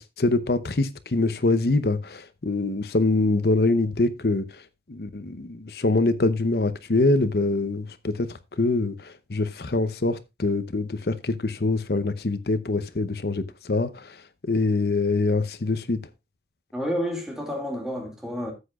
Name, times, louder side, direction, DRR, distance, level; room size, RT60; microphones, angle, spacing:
voice 1, 0.0-4.6 4.9-14.2 14.4-16.0, left 2 dB, 65° left, 0.8 m, -24 dB
voice 2, 16.7-18.5, equal, 5° right, 2.2 m, -30 dB
13.0 x 8.2 x 2.4 m
head